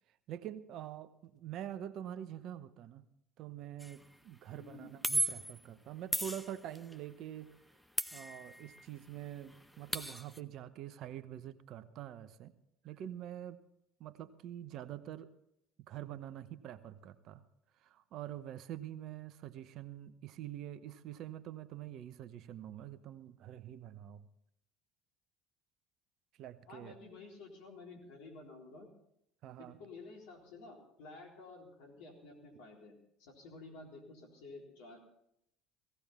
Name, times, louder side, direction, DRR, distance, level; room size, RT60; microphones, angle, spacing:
voice 1, 0.3-3.0 3.4-7.5 8.1-12.5 12.8-13.6 14.0-15.3 15.8-17.4 17.8-24.3 26.4-26.9 29.4-29.7, right 11 dB, 55° right, 14 dB, 0.9 m, -45 dB
sound 1, 3.8-4.0 5.0-5.6 6.1-7.0 8.0-8.9 9.2-9.3 9.5-10.4, right 1 dB, 5° left, 0.9 m, -36 dB
voice 2, 4.6-4.9 26.7-28.9 29.6-35.0, left 3 dB, 70° left, 0 dB, 3.9 m, -52 dB
17.0 x 16.0 x 4.2 m, 0.77 s
hypercardioid pair, 65°, 0 cm